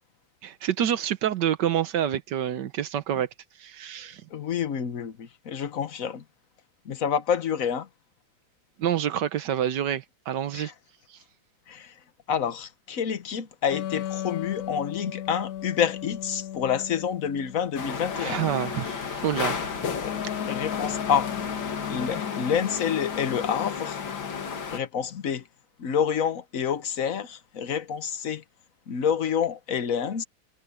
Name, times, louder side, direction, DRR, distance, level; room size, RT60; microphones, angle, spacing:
voice 1, 0.4-3.3 3.6-4.2 8.8-10.7 11.1-11.2 18.2-19.8, right 10 dB, 70° right, 1.4 m, -27 dB
voice 2, 4.3-6.2 6.8-7.9 10.5-10.7 11.7-11.9 12.3-18.4 20.0-20.1 20.5-21.3 21.9-24.0 24.7-25.4 25.8-28.4 28.9-30.2, left 7 dB, 50° left, 1.4 m, -28 dB
sound 1, 13.7-17.7 20.0-23.7, left 11 dB, 70° left, 0.9 m, -36 dB
sound 2, 17.7-24.8, left 6 dB, 85° left, 2.6 m, -32 dB
omnidirectional pair, 2.0 m